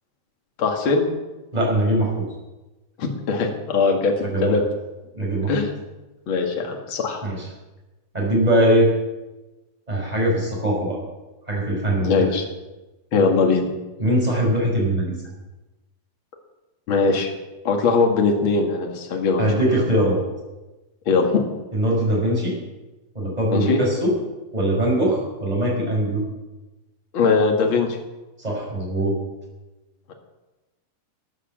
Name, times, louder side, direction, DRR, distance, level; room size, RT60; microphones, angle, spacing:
voice 1, 0.6-1.1 3.0-4.1 4.4-4.6 5.5-5.7 6.3-7.2 12.0-12.4 13.1-13.7 16.9-17.3 17.6-19.4 21.1-21.4 23.5-23.8 27.1-27.9 30.1-30.2, left 4 dB, 40° left, 2 dB, 2.2 m, -20 dB
voice 2, 1.5-2.2 4.2-4.5 5.1-5.5 7.2-7.5 8.1-8.9 9.9-11.0 11.5-12.3 14.0-15.2 19.4-20.2 21.7-22.6 23.1-24.1 24.5-26.2 28.4-29.2, right 1 dB, 10° right, -3 dB, 5.2 m, -21 dB
13.5 x 9.9 x 7.6 m, 1.1 s
omnidirectional pair, 4.2 m